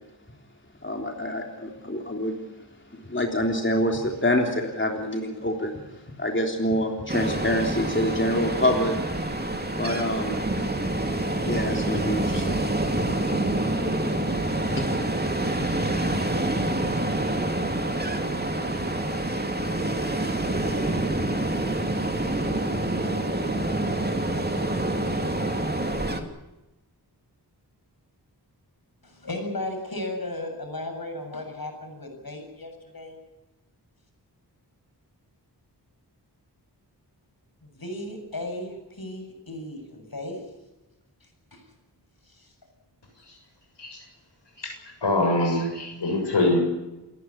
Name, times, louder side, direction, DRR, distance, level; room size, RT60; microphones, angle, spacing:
voice 1, 0.8-2.4 3.0-5.8 6.2-9.0 9.8-10.4 11.4-12.6 14.1-14.2 14.5-14.9, left 1 dB, 30° left, 2 dB, 3.5 m, -26 dB
Ocean, 7.1-26.2, right 1 dB, 25° right, 2.9 m, -27 dB
voice 2, 29.0-33.2 37.6-40.4 41.2-41.6 42.2-42.5, left 1 dB, 60° left, 4 dB, 7.4 m, -35 dB
voice 3, 45.0-46.6, left 2 dB, 85° left, 2 dB, 7.4 m, -23 dB
28.5 x 14.0 x 10.0 m, 1.0 s
wide cardioid pair, 55°, 41 cm